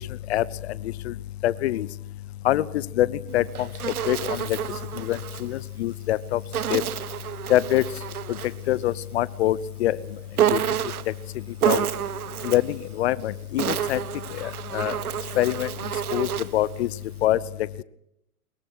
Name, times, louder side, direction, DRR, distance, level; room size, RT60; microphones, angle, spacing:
voice 1, 1.4-1.9 2.4-2.6 3.0-3.1 3.3-3.4 4.1-4.6 5.0-6.4 6.7-6.8 7.5-7.8 8.7-10.0 10.5-10.6 11.6-11.9 12.4-14.0 14.4-14.9 15.4-15.7 16.1-16.3 16.5-16.9 17.2-17.4, left 14 dB, 45° left, 20 dB, 0.9 m, -24 dB
Insect, 3.3-5.5 6.5-8.6 10.4-11.2 11.6-12.7 13.4-16.6, right 10 dB, 70° right, 1.2 m, -28 dB
23.0 x 22.5 x 6.4 m, 0.79 s
hypercardioid pair, 125°, 46 cm